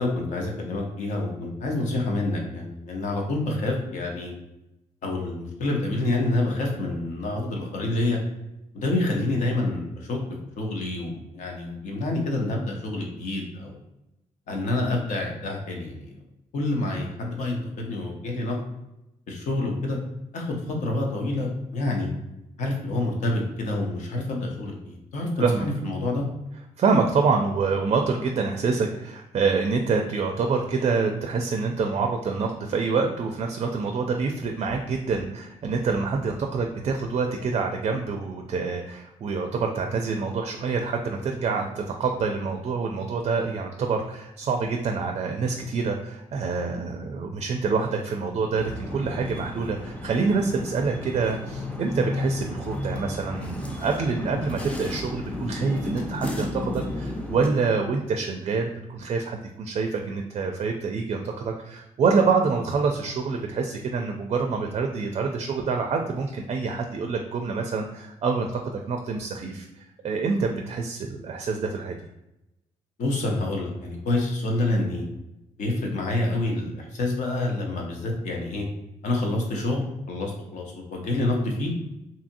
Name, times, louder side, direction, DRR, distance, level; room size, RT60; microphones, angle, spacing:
voice 1, 0.0-4.3 5.0-8.2 8.7-10.2 10.6-13.8 14.5-16.1 16.5-18.6 19.3-20.0 20.3-22.1 22.6-26.2 73.0-75.0 75.6-78.7 79.0-81.7, left 2 dB, 70° left, 0 dB, 0.8 m, -27 dB
voice 2, 26.8-72.0, right 4 dB, 50° right, 4 dB, 0.4 m, -26 dB
sound 1, 48.5-57.5, left 2 dB, 10° left, 0.5 m, -33 dB
2.7 x 2.6 x 2.6 m, 0.89 s
cardioid pair, 75°, 13 cm